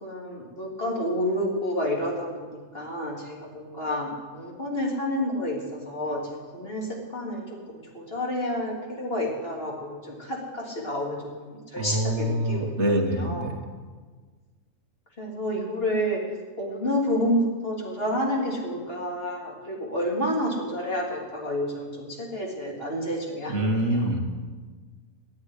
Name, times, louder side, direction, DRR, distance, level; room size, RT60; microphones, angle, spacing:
voice 1, 0.0-6.2 6.5-12.7 13.0-13.6 15.2-16.2 16.6-24.0, equal, 40° left, -3 dB, 3.7 m, -29 dB
voice 2, 11.8-13.6 23.5-24.2, right 1 dB, 55° right, 3 dB, 1.7 m, -25 dB
13.0 x 10.5 x 9.7 m, 1.4 s
omnidirectional pair, 1.5 m